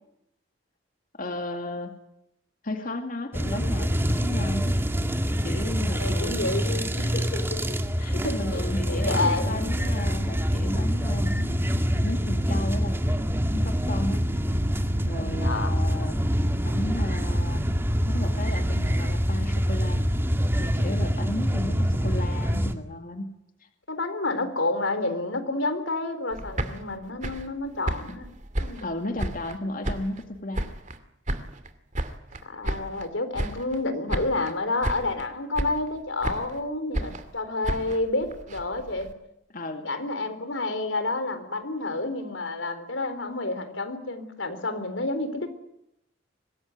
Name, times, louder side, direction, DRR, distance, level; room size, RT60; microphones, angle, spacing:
voice 1, 1.1-1.9 2.6-4.8 5.4-6.5 7.0-7.6 8.0-13.0 13.5-14.3 15.0-16.2 16.6-17.6 18.1-20.0 20.6-23.3 28.8-30.7 39.5-39.9, left 1 dB, 45° left, 5 dB, 2.4 m, -34 dB
sound 1, 3.3-22.7, equal, 10° right, 2.0 m, -25 dB
voice 2, 6.0-7.1 8.1-9.8 15.4-15.7 23.9-28.3 28.6-28.8 32.4-39.1 39.8-45.7, left 2 dB, 90° left, 10 dB, 3.8 m, -29 dB
sound 2, 26.3-29.6 29.8-31.0 31.3-33.1 33.3-33.8 34.1-34.6 34.8-35.3 35.6-36.6 36.9-39.1, right 1 dB, 40° right, 2.5 m, -32 dB
24.0 x 20.0 x 9.6 m, 0.81 s
head